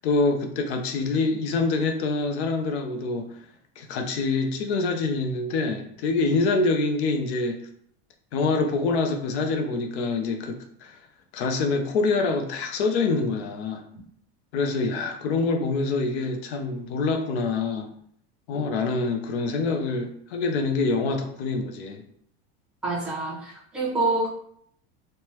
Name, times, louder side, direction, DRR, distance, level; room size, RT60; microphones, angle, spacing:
voice 1, 0.0-3.3 3.8-7.6 8.3-11.0 11.3-13.9 14.5-17.9 18.5-22.0, left 3 dB, 75° left, 5 dB, 0.6 m, -25 dB
voice 2, 22.8-24.3, right 2 dB, 5° right, -7 dB, 0.3 m, -26 dB
3.2 x 2.2 x 2.9 m, 0.65 s
supercardioid pair, 170°, 34 cm